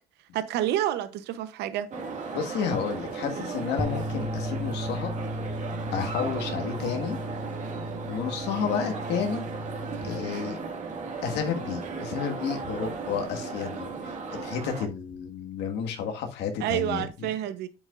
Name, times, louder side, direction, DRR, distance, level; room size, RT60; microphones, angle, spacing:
voice 1, 0.3-1.9 3.3-3.5 16.6-17.7, right 12 dB, 80° right, 0.8 m, -29 dB
sound 1, 1.9-14.9, right 4 dB, 45° right, 1.9 m, -36 dB
voice 2, 2.3-5.1 5.9-7.2 8.0-9.5 10.0-10.6 11.2-13.9 14.3-17.1, left 7 dB, 85° left, 1.7 m, -31 dB
sound 2, 3.8-10.0, equal, 5° right, 1.2 m, -35 dB
8.3 x 7.1 x 2.4 m
cardioid pair, 110°, 17 cm